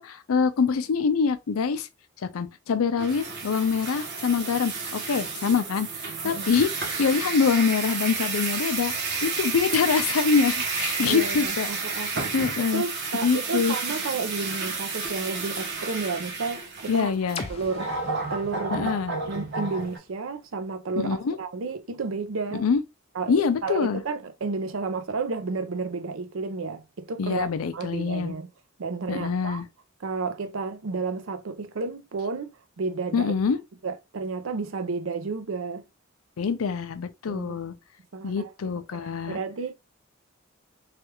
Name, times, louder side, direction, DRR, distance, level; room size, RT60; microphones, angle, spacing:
voice 1, 0.0-1.9 2.3-8.9 9.2-11.7 12.0-12.8 13.2-13.8 16.9-17.4 18.7-19.1 21.0-21.4 22.5-22.8 23.3-24.0 27.2-28.3 29.1-29.6 33.1-33.6 36.4-37.7 38.2-39.4, left 5 dB, 85° left, 0.5 m, -25 dB
sound 1, 3.0-20.0, right 4 dB, 55° right, 0.9 m, -31 dB
voice 2, 11.0-17.1 17.5-17.9 18.3-18.9 19.3-22.7 23.1-23.3 23.6-28.5 28.8-29.6 30.0-33.3 33.8-35.8 37.3-37.6 38.1-39.7, right 4 dB, 70° right, 0.5 m, -32 dB
sound 2, 17.3-21.2, left 4 dB, 25° left, 0.3 m, -42 dB
3.3 x 2.4 x 2.9 m
head